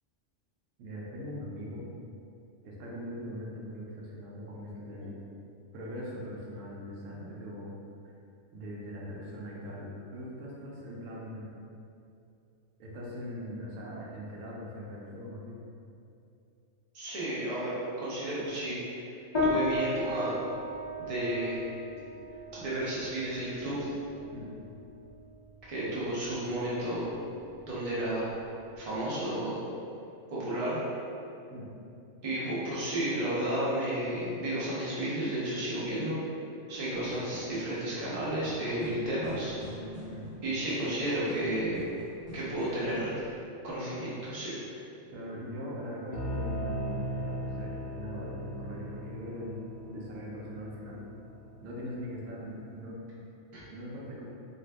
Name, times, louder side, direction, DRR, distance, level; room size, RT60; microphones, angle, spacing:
voice 1, 0.8-1.8 2.6-5.1 5.7-7.7 8.5-11.5 12.8-15.6 24.3-24.5 31.5-31.7 40.1-40.3 45.1-49.5 49.9-51.0 51.6-53.0 53.7-54.3, equal, 80° right, -4 dB, 0.9 m, -41 dB
voice 2, 16.9-18.8 19.4-20.3 21.0-21.6 22.5-23.9 25.7-27.1 27.7-28.3 28.8-29.6 30.3-30.8 32.2-36.2 36.7-39.6 40.4-41.8 42.3-43.1 43.6-44.5 53.5-53.6, right 1 dB, 35° right, -8 dB, 0.6 m, -32 dB
sound 1, 19.3-29.0, left 2 dB, 45° left, 0.3 m, -36 dB
sound 2, 37.1-43.2, left 1 dB, 65° right, 1.2 m, -46 dB
sound 3, 46.1-51.7, equal, 70° left, 0.8 m, -38 dB
2.6 x 2.2 x 3.3 m, 2.7 s
omnidirectional pair, 1.3 m